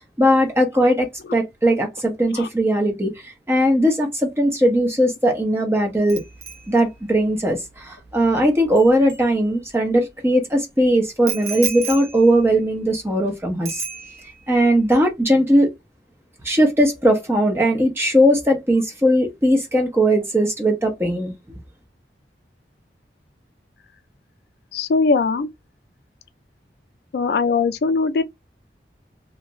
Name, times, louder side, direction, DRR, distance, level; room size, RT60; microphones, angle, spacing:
voice 1, 0.2-6.2 6.7-13.8 14.5-15.7 16.4-21.3, equal, 15° right, 0.8 m, -19 dB
Bicycle bell, 6.1-9.9 11.3-13.3 13.6-14.5 14.8-15.1, right 6 dB, 75° right, 0.9 m, -34 dB
voice 2, 24.7-25.5 27.1-28.2, left 4 dB, 65° left, 0.3 m, -20 dB
2.6 x 2.4 x 3.0 m
head